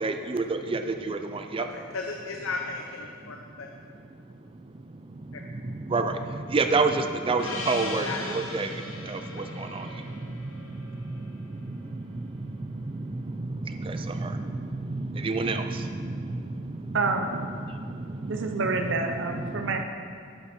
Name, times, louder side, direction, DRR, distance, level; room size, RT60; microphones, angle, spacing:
voice 1, 0.0-1.7 5.9-6.2 6.5-8.7 9.0-9.8 13.8-14.4 14.9-16.2, right 3 dB, 25° right, 7 dB, 0.4 m, -27 dB
voice 2, 1.7-3.7 8.0-8.2, left 4 dB, 85° left, 2 dB, 0.7 m, -35 dB
Gong, 7.4-12.2, left 2 dB, 65° left, 1.3 m, -39 dB
voice 3, 16.9-17.6 18.3-19.8, right 3 dB, 65° right, 4 dB, 0.7 m, -28 dB
11.0 x 8.9 x 4.3 m, 2.2 s
head